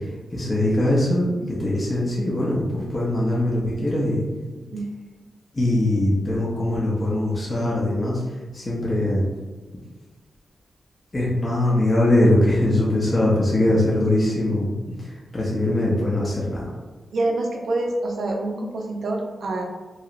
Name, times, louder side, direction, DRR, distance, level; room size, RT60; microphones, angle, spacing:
voice 1, 0.0-4.2 5.5-8.2 8.5-9.3 11.1-16.7, left 1 dB, 25° left, -6 dB, 0.6 m, -22 dB
voice 2, 17.1-19.6, right 2 dB, 65° right, 1 dB, 0.5 m, -26 dB
3.1 x 2.8 x 2.4 m, 1.3 s
wide cardioid pair, 165°, 0 cm